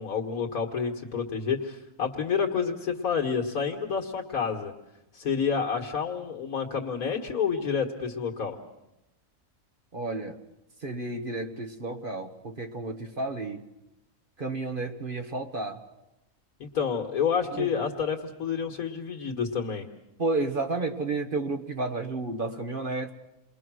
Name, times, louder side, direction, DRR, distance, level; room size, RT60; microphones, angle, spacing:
voice 1, 0.0-4.7 5.1-8.6 16.6-19.9, left 6 dB, 85° left, 2 dB, 2.2 m, -29 dB
voice 2, 9.9-10.4 10.8-13.6 14.4-15.8 17.5-17.7 20.2-23.1, right 3 dB, 40° right, 5 dB, 1.7 m, -31 dB
29.0 x 22.0 x 6.3 m, 0.89 s
omnidirectional pair, 1.5 m